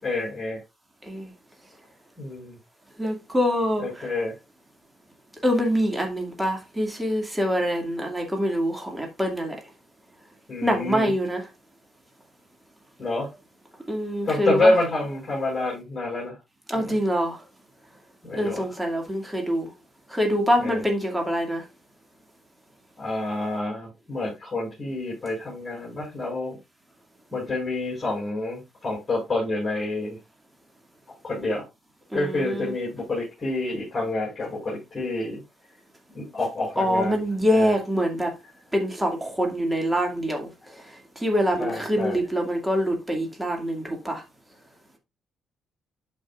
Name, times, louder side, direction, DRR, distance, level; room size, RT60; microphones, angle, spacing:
voice 1, 0.0-0.6 2.2-2.6 3.8-4.3 10.5-11.1 13.0-13.3 14.2-16.3 16.7-16.9 18.2-18.6 20.6-20.8 23.0-26.6 27.3-30.2 31.2-31.6 32.1-35.4 36.1-37.2 37.5-37.7 41.6-42.2, left 2 dB, 30° left, 5.7 m, -28 dB
voice 2, 3.0-4.1 5.4-9.6 10.6-11.5 13.9-14.7 16.7-17.4 18.3-19.7 20.1-21.6 32.1-32.7 36.8-38.3 38.7-44.2, equal, 10° right, 2.3 m, -25 dB
12.0 x 5.4 x 2.5 m
cardioid pair, 90°, 0 cm